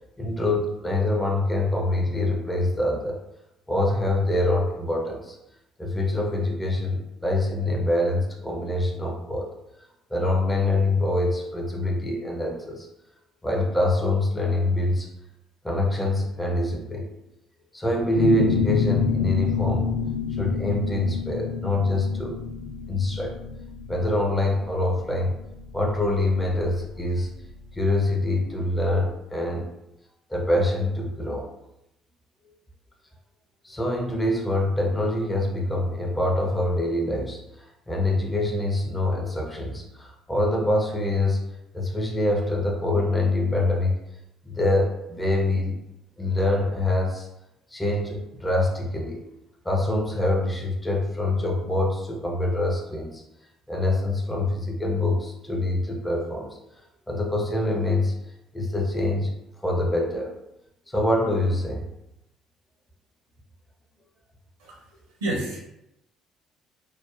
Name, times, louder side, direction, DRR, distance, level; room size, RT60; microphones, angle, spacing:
voice 1, 0.2-3.2 3.7-5.4 5.8-9.5 10.1-12.9 13.4-15.1 15.6-17.1 17.7-19.9 20.3-22.4 22.9-23.3 23.9-25.3 25.7-27.3 27.7-29.7 30.3-31.5 33.6-41.5 41.7-44.0 44.4-45.8 46.2-47.3 47.7-49.2 49.6-53.2 53.7-56.5 57.1-58.1 58.5-59.3 59.6-60.3 60.9-61.8, left 1 dB, 15° left, -1 dB, 0.5 m, -25 dB
sound 1, 18.1-27.5, left 6 dB, 85° left, 0.7 m, -27 dB
voice 2, 64.6-65.7, right 1 dB, 75° right, -3 dB, 0.6 m, -31 dB
3.1 x 2.0 x 2.4 m, 0.87 s
figure-of-eight pair, 50°, 0 cm